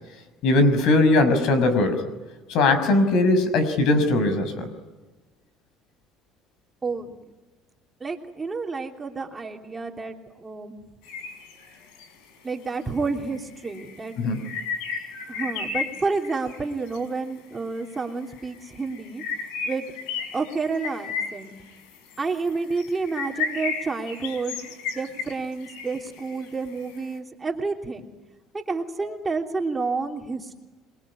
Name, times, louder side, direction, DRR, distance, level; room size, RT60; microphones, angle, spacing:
voice 1, 0.4-2.0 2.5-4.7 14.2-14.4, left 2 dB, 65° left, 11 dB, 5.8 m, -20 dB
voice 2, 6.8-7.2 8.0-10.8 12.4-14.2 15.3-19.2 19.7-19.9 20.3-21.5 22.2-28.0 28.5-30.5, right 4 dB, 20° right, 2 dB, 3.1 m, -30 dB
sound 1, 11.0-12.1 13.0-13.1 13.4-17.0 17.8-18.0 18.3-27.0, left 5 dB, 80° left, 5.1 m, -34 dB
27.0 x 22.0 x 9.8 m, 1.2 s
cardioid pair, 125°, 0 cm